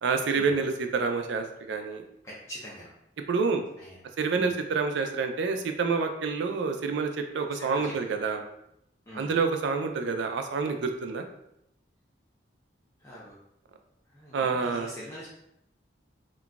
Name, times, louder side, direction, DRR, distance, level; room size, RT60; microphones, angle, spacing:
voice 1, 0.0-2.0 3.3-3.6 4.2-8.4 9.1-11.2 14.3-14.9, right 4 dB, 70° right, 6 dB, 0.4 m, -28 dB
voice 2, 2.2-2.9 3.8-4.0 4.3-4.5 7.5-7.9 9.1-9.3 13.0-13.3 14.1-15.3, equal, 15° left, -7 dB, 0.5 m, -43 dB
3.8 x 2.3 x 2.2 m, 0.78 s
head